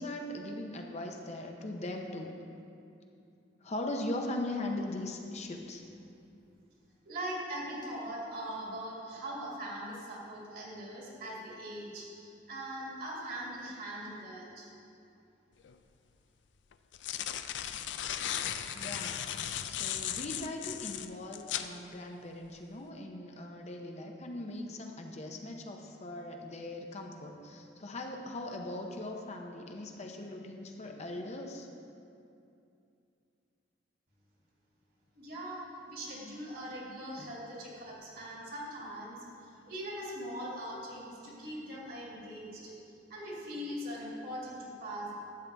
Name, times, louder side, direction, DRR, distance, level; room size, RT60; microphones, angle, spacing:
voice 1, 0.0-2.3 3.6-5.8 18.7-19.2 19.7-31.7 37.2-37.4, left 1 dB, 40° left, 2 dB, 0.7 m, -40 dB
voice 2, 7.1-14.7 35.1-42.7 43.1-45.2, right 1 dB, 55° right, -4 dB, 2.2 m, -41 dB
sound 1, 15.6-15.7 16.7-21.7, left 10 dB, 75° left, 0.4 m, -36 dB
12.0 x 7.7 x 3.4 m, 2.6 s
head